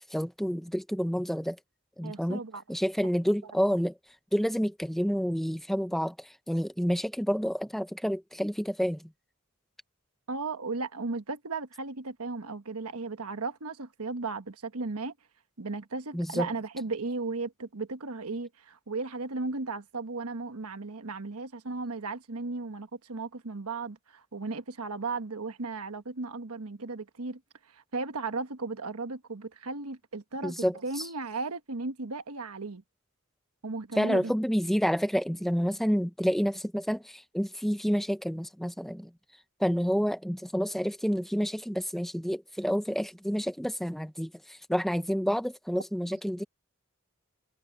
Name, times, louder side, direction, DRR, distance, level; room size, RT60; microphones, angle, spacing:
voice 1, 0.1-1.6 2.0-2.4 2.7-4.0 4.3-9.1 16.1-16.5 30.4-31.1 33.9-39.1 39.6-46.4, equal, ahead, 0.7 m, -29 dB
voice 2, 2.0-2.6 10.3-15.1 15.6-27.4 27.7-30.5 30.8-32.8 33.6-34.3, right 3 dB, 85° right, 1.3 m, -35 dB
head